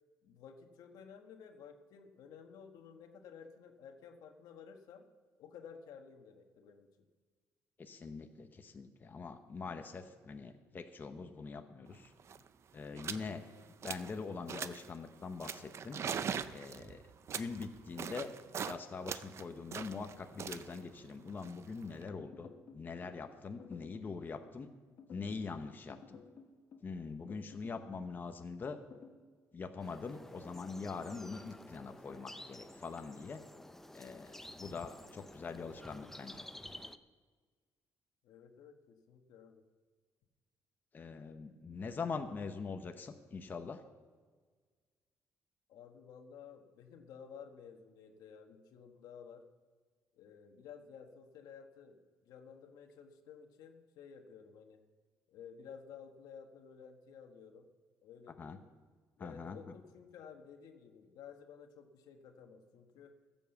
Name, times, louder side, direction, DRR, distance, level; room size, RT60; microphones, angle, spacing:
voice 1, 0.2-5.1 5.4-6.9 13.8-13.9 38.2-39.6 45.7-49.4 50.2-54.8 55.3-57.7 58.0-58.7 59.2-63.1, left 7 dB, 85° left, 5 dB, 1.3 m, -54 dB
voice 2, 7.8-12.1 12.7-13.4 13.8-16.0 16.5-17.0 17.3-18.3 18.6-24.7 25.1-26.2 26.8-28.8 29.5-33.4 33.9-36.5 40.9-43.8 58.4-58.6 59.2-59.6, left 4 dB, 30° left, 6 dB, 0.9 m, -43 dB
sound 1, 11.9-12.0 12.2-12.5 13.0-13.3 13.6-14.2 14.5-14.9 15.4-18.8 19.1-22.1, right 7 dB, 45° right, 0.5 m, -42 dB
sound 2, 22.2-23.2 23.6-24.2 25.0-25.5 25.9-26.9 27.3-27.9 28.7-29.2, left 6 dB, 60° left, 1.5 m, -55 dB
sound 3, 29.8-37.0, left 1 dB, 5° left, 0.5 m, -51 dB
16.0 x 7.2 x 7.1 m, 1.5 s
cardioid pair, 130°, 6 cm